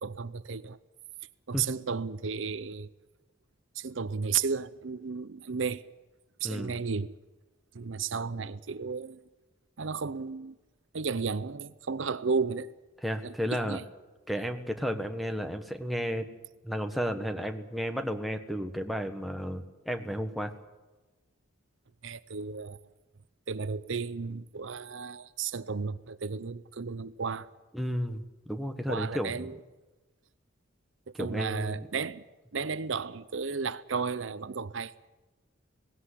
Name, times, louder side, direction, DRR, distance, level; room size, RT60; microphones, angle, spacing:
voice 1, 0.0-0.8 1.5-2.9 3.8-5.8 6.4-7.1 7.7-9.2 9.8-10.6 10.9-12.7 13.2-13.8 22.0-22.8 23.5-27.5 28.9-29.6 31.2-32.2 32.5-35.0, right 5 dB, 65° right, 0.7 m, -33 dB
voice 2, 13.0-13.8 14.3-16.3 16.6-20.5 27.7-29.4 31.1-31.9, equal, ahead, 1.4 m, -33 dB
19.0 x 16.5 x 9.9 m
head